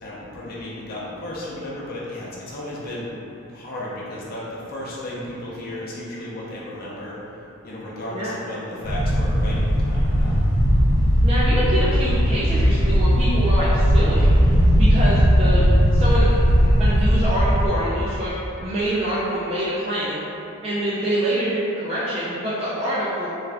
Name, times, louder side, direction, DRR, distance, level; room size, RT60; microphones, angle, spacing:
voice 1, 0.0-3.2 3.5-7.2 7.6-10.4, left 1 dB, 45° left, -7 dB, 0.6 m, -34 dB
sound 1, 8.8-17.7, equal, 80° left, 0.8 m, -18 dB
voice 2, 11.2-14.4 14.7-20.2 20.6-23.3, right 1 dB, 25° right, -10 dB, 0.4 m, -25 dB
3.3 x 2.4 x 3.3 m, 2.9 s
head